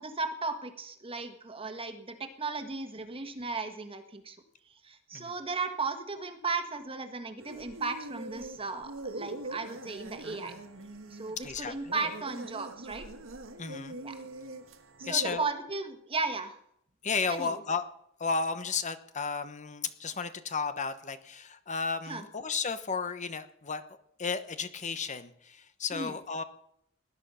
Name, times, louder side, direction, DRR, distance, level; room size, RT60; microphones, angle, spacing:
voice 1, 0.0-4.4 4.8-10.5 11.1-13.1 14.0-14.2 15.0-16.6 17.3-17.5 22.1-22.2 25.9-26.1, right 3 dB, 30° right, 8 dB, 1.6 m, -35 dB
sound 1, 7.4-15.4, right 2 dB, 75° right, 1.6 m, -43 dB
voice 2, 11.4-11.7 13.6-14.0 15.1-15.5 17.0-17.8 18.2-23.8 24.2-26.4, left 5 dB, 35° left, 11 dB, 1.0 m, -33 dB
19.0 x 11.5 x 5.6 m, 0.72 s
head